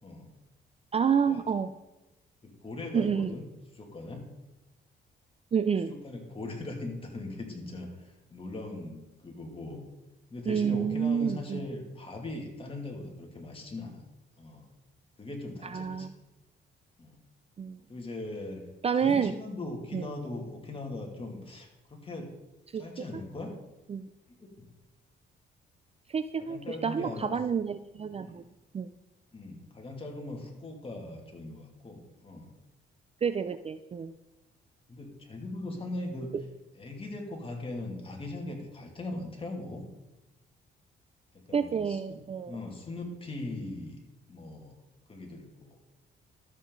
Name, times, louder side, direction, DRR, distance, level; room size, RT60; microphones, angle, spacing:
voice 1, 0.9-1.7 2.9-3.3 5.5-5.9 10.5-11.6 15.6-16.1 17.6-17.8 18.8-19.3 19.9-20.1 22.7-22.8 23.9-24.0 26.1-28.4 28.7-28.9 33.2-34.1 36.3-36.4 41.5-42.6, right 7 dB, 30° right, 11 dB, 0.4 m, -29 dB
voice 2, 2.4-3.4 3.7-4.3 5.9-7.9 8.3-9.9 10.3-14.0 14.4-14.7 15.2-16.1 17.0-17.2 17.9-18.6 18.9-22.3 22.7-23.5 24.4-24.7 26.4-27.3 28.2-28.5 29.3-32.5 34.9-36.3 36.7-39.8 41.5-42.2 42.5-44.0 44.3-44.7 45.1-45.8, left 2 dB, 25° left, 1 dB, 2.4 m, -40 dB
12.5 x 7.3 x 3.9 m, 1.0 s
cardioid pair, 90°, 20 cm